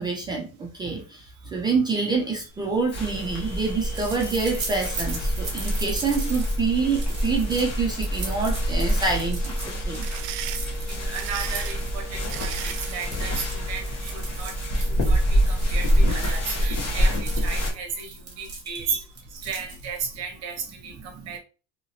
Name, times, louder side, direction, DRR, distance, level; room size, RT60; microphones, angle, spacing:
voice 1, 0.0-10.1 10.4-10.5 12.8-12.9 18.7-19.0 21.2-21.3, right 4 dB, 15° right, -2 dB, 0.3 m, -27 dB
sound 1, 2.7-20.1, right 3 dB, 30° right, 1.2 m, -39 dB
sound 2, 2.9-17.7, equal, 45° left, 1.1 m, -26 dB
sound 3, 10.0-13.0, right 11 dB, 75° right, 0.5 m, -36 dB
voice 2, 10.9-14.6 15.0-21.4, right 6 dB, 45° right, 4 dB, 0.9 m, -34 dB
2.9 x 2.8 x 2.7 m, 0.35 s
cardioid pair, 160°, 36 cm